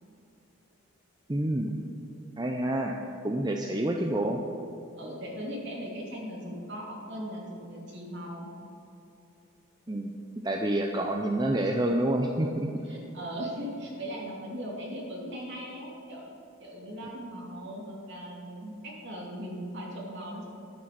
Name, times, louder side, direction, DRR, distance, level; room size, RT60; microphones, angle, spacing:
voice 1, 1.3-1.7 2.4-3.0 3.2-4.4 9.9-10.1 10.4-12.7, right 1 dB, 20° right, 2 dB, 0.5 m, -28 dB
voice 2, 5.0-8.5 12.8-16.3 16.6-20.4, equal, 55° right, -2 dB, 2.7 m, -38 dB
11.0 x 8.9 x 6.0 m, 2.9 s
head